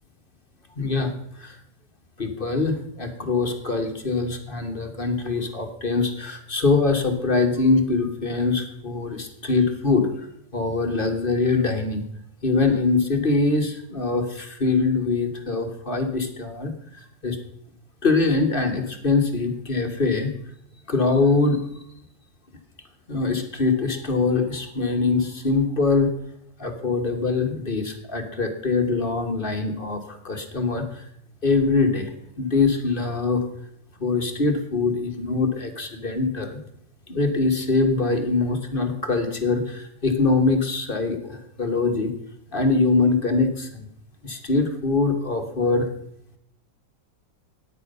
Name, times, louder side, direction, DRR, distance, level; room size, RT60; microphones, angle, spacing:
voice 1, 0.8-1.1 1.4-1.6 2.2-10.1 10.5-12.0 12.4-17.4 18.0-20.3 20.9-21.6 23.1-26.1 26.6-30.8 31.4-32.1 32.4-33.4 34.0-36.6 37.1-42.1 42.5-43.8 44.2-45.9, left 3 dB, 30° left, 5 dB, 1.4 m, -23 dB
14.5 x 9.6 x 5.5 m, 0.73 s
omnidirectional pair, 1.9 m